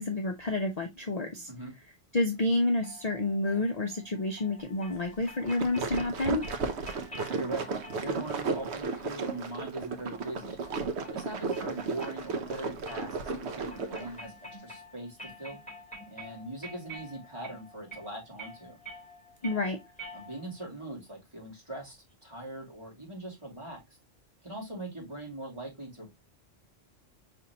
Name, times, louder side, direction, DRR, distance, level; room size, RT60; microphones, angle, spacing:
voice 1, 0.0-1.5 2.1-6.4 19.4-19.8, left 2 dB, 40° left, 0.7 m, -29 dB
sound 1, 2.8-20.7, equal, 5° left, 3.2 m, -49 dB
sound 2, 5.3-14.2, right 4 dB, 65° right, 1.0 m, -34 dB
voice 2, 7.0-7.7 8.0-10.6 11.1-15.6 16.1-18.8 20.1-23.8 24.4-26.1, right 1 dB, 25° right, 2.3 m, -41 dB
5.6 x 3.5 x 2.7 m
omnidirectional pair, 1.3 m